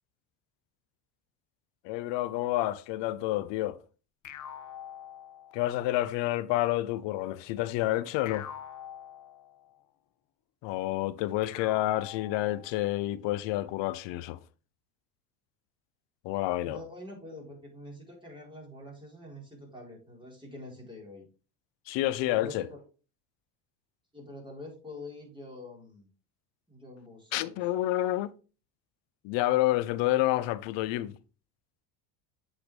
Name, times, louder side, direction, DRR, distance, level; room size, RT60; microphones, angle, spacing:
voice 1, 1.8-3.8 5.5-8.5 10.6-14.4 16.2-16.8 21.9-22.6 27.3-28.3 29.2-31.2, left 15 dB, 65° left, 0.8 m, -29 dB
sound 1, 4.2-5.9 8.3-9.8 11.4-12.9, left 9 dB, 40° left, 0.9 m, -45 dB
voice 2, 16.6-21.3 22.2-22.8 24.1-26.1 26.7-27.6, left 2 dB, 10° right, 4.4 m, -45 dB
8.1 x 5.8 x 3.4 m
supercardioid pair, 85°, 48 cm